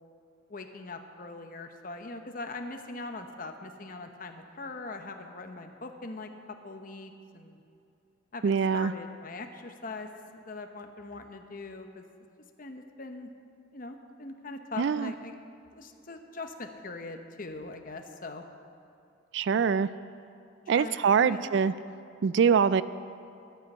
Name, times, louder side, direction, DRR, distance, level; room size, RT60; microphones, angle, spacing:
voice 1, 0.5-7.6 8.3-10.1 10.3-12.0 12.6-13.3 13.7-15.3 15.7-18.4 19.5-20.0 20.7-21.6, left 3 dB, 45° left, 5 dB, 0.9 m, -41 dB
voice 2, 8.4-8.9 14.8-15.1 19.3-19.9 20.7-21.7 22.2-22.8, right 6 dB, 60° right, 16 dB, 0.3 m, -24 dB
11.5 x 9.6 x 8.6 m, 2.6 s
head